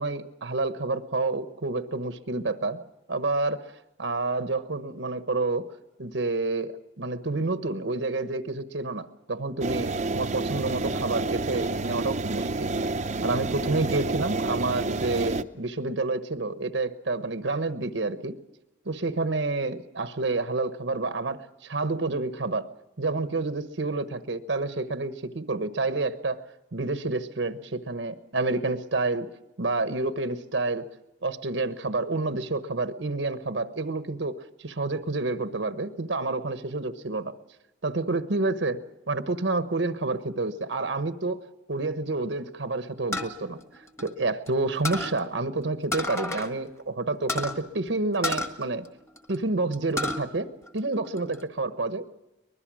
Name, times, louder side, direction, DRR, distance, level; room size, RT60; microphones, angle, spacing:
voice 1, 0.0-2.8 3.1-3.7 4.0-5.7 6.0-12.7 13.2-18.4 18.8-22.7 23.0-26.4 26.7-29.3 29.6-30.9 31.2-37.3 37.8-41.4 41.7-43.6 44.0-48.9 49.3-50.5 50.7-52.1, right 3 dB, 80° right, 10 dB, 1.1 m, -29 dB
sound 1, 9.6-15.4, right 3 dB, 35° right, 0.7 m, -29 dB
sound 2, 43.1-44.5 44.8-45.2 45.9-46.5 46.8-46.9 47.3-47.6 48.2-49.4 49.7-50.2 50.7-51.4, left 2 dB, 15° left, 1.5 m, -31 dB
23.5 x 21.0 x 6.2 m, 0.97 s
head